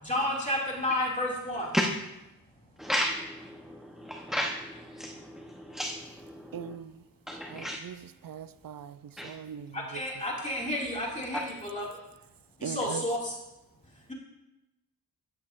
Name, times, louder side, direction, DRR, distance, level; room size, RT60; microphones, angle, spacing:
voice 1, 0.0-1.7 9.7-12.0 12.6-13.3, left 1 dB, 20° left, 2.3 m, -31 dB
voice 2, 2.8-3.5 4.0-6.0 6.3-6.7 7.3-7.8 9.2-9.3 11.3-11.4, equal, ahead, 0.8 m, -32 dB
voice 3, 6.5-6.9 7.5-9.0 9.2-10.0 12.6-13.0, right 8 dB, 65° right, 0.6 m, -40 dB
13.5 x 11.0 x 2.5 m
wide cardioid pair, 80°, 38 cm